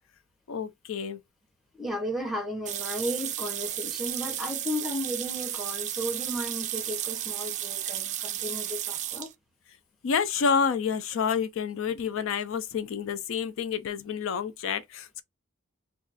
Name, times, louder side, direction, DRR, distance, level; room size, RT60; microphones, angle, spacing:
voice 1, 0.5-1.2 10.0-15.2, left 6 dB, 65° left, 0.4 m, -29 dB
voice 2, 1.7-9.3, equal, ahead, 0.7 m, -34 dB
sound 1, 2.7-9.3, right 11 dB, 35° right, 0.3 m, -33 dB
2.4 x 2.3 x 4.0 m
head